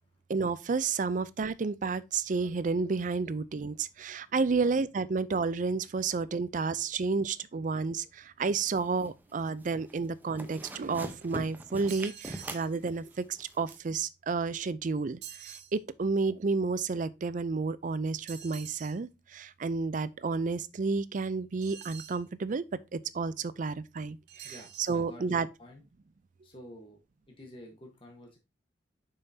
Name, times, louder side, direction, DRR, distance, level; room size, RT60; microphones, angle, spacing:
voice 1, 0.3-22.6 22.9-24.5 24.8-25.5, right 4 dB, 45° right, 0.4 m, -31 dB
sound 1, 8.7-9.3 9.6-9.9 10.2-13.8, right 1 dB, 10° right, 0.8 m, -41 dB
sound 2, 11.9-12.7 15.2-15.7 18.3-19.0 21.6-22.2 24.3-25.0, right 10 dB, 75° right, 0.8 m, -46 dB
voice 2, 24.4-25.8 26.4-27.0 27.3-28.4, left 1 dB, 30° left, 1.2 m, -50 dB
6.9 x 5.6 x 2.7 m
head